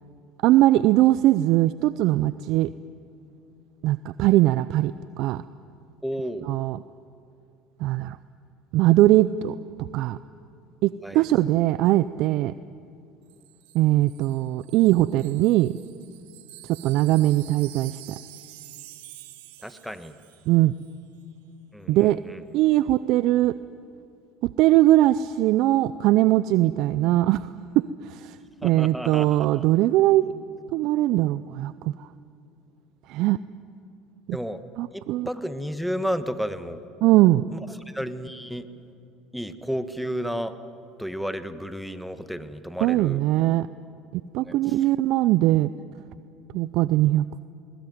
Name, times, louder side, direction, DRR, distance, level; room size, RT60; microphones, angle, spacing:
voice 1, 0.4-2.7 3.8-4.9 5.2-5.4 6.5-6.8 7.8-8.2 8.7-9.5 9.9-10.2 10.8-12.5 13.7-15.7 16.8-18.0 20.5-20.7 21.9-22.2 22.5-23.6 24.4-27.5 28.0-28.4 28.6-30.3 30.7-32.1 33.1-33.4 34.3-34.4 34.8-35.3 37.0-37.4 42.8-43.7 44.1-45.7 46.5-47.2, right 15 dB, 65° right, 16 dB, 0.5 m, -20 dB
voice 2, 6.0-6.5 11.0-11.3 19.6-20.2 21.7-22.4 28.6-29.6 34.3-34.6 34.9-36.8 37.5-38.7 39.3-40.6 41.0-43.2 44.4-44.8, equal, ahead, 10 dB, 1.6 m, -32 dB
Wind chime, 13.3-20.5 20.8-21.0, right 16 dB, 80° right, 1.3 m, -47 dB
21.0 x 20.5 x 9.5 m, 2.5 s
hypercardioid pair, 80°, 0 cm